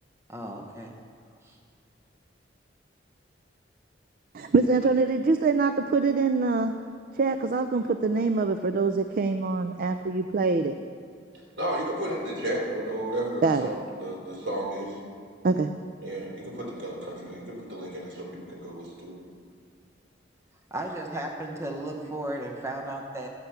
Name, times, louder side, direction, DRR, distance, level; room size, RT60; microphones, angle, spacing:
voice 1, 0.3-0.9 1.4-1.6 20.7-23.3, right 1 dB, 15° right, 0 dB, 0.8 m, -35 dB
voice 2, 4.3-6.8 7.1-10.7 13.4-13.7 15.4-15.7, right 4 dB, 50° right, 8 dB, 0.4 m, -24 dB
voice 3, 11.6-14.9 16.0-19.1, right 1 dB, 70° right, -4 dB, 3.4 m, -33 dB
13.0 x 8.1 x 5.7 m, 2.1 s
head